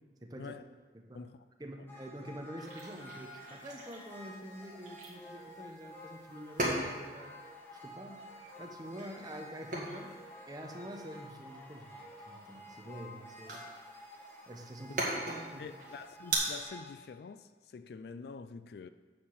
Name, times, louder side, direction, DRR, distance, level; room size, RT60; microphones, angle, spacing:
voice 1, 0.2-0.5 0.9-1.3 1.6-8.2 8.6-10.1 10.5-13.6 14.5-15.7, equal, 20° right, 0.8 m, -46 dB
sound 1, 1.9-16.9, equal, 10° left, 1.0 m, -51 dB
sound 2, 2.6-16.4, right 2 dB, 45° right, 1.8 m, -41 dB
voice 2, 15.6-18.9, left 5 dB, 60° left, 0.3 m, -46 dB
8.6 x 4.9 x 7.0 m
head